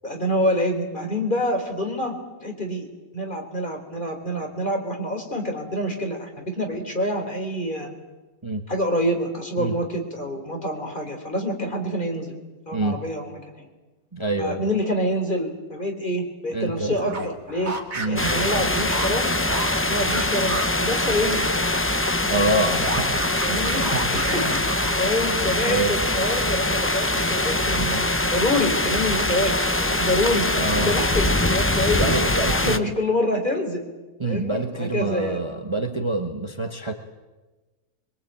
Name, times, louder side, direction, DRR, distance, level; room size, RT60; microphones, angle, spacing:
voice 1, 0.0-2.9 3.1-7.9 8.7-12.3 12.7-13.7 14.4-17.7 18.1-19.4 19.9-21.5 23.4-24.6 25.0-29.5 29.8-30.5 30.9-32.1 32.5-33.8 34.2-35.4, left 1 dB, 30° left, 3 dB, 3.9 m, -26 dB
voice 2, 14.1-14.7 16.5-16.9 17.9-18.2 22.3-24.7 25.6-26.0 30.5-31.0 32.0-32.9 34.2-36.9, right 2 dB, 20° right, 4 dB, 1.5 m, -27 dB
sound 1, 16.9-21.6 21.9-25.2, right 2 dB, 65° right, 2.8 m, -33 dB
sound 2, 18.2-32.8, left 1 dB, 10° left, 0.7 m, -23 dB
23.5 x 22.5 x 8.9 m, 1.2 s
omnidirectional pair, 1.6 m